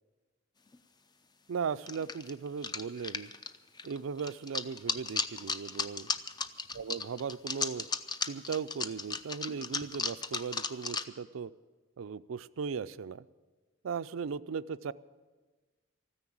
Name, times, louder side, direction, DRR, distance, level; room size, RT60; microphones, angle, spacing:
sound 1, 0.7-0.8 1.9-11.0, left 4 dB, 20° left, 0.5 m, -35 dB
voice 1, 1.5-3.3 3.8-6.1 6.7-7.9 8.2-11.5 12.0-13.3 13.8-14.9, right 6 dB, 85° right, 14 dB, 0.4 m, -37 dB
14.0 x 9.9 x 8.6 m, 1.3 s
head